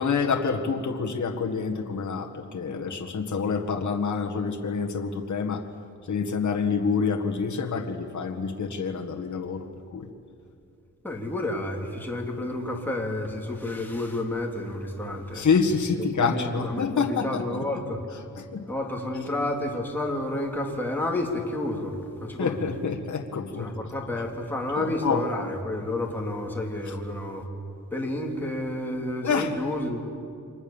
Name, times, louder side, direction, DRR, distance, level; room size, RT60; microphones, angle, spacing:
voice 1, 0.0-5.6 6.1-9.7 9.9-10.1 15.3-17.6 18.4-18.6 22.4-23.7 24.8-25.3 29.2-29.5, left 5 dB, 55° left, 2 dB, 1.8 m, -27 dB
voice 2, 11.0-15.5 16.0-18.0 18.7-22.7 23.6-27.5 27.9-30.0, left 1 dB, 5° left, -1 dB, 3.0 m, -30 dB
29.5 x 25.0 x 7.2 m, 2.5 s
wide cardioid pair, 155°, 34 cm